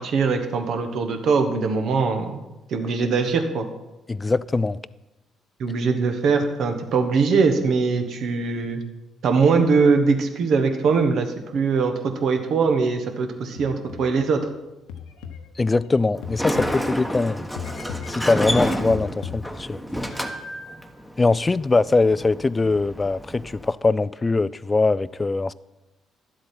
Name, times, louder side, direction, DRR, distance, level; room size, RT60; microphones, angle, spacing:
voice 1, 0.0-2.4 2.7-3.7 5.6-8.8 9.2-14.5, right 4 dB, 60° right, 1.2 m, -21 dB
voice 2, 4.1-4.8 15.6-17.5 18.1-19.8 21.2-25.5, left 3 dB, 25° left, 0.3 m, -22 dB
sound 1, 13.6-14.3 14.9-17.2 17.6-19.9, left 7 dB, 75° left, 0.9 m, -38 dB
Sliding door, 16.2-23.7, equal, ahead, 1.1 m, -29 dB
11.5 x 7.7 x 4.4 m
hypercardioid pair, 45°, 0 cm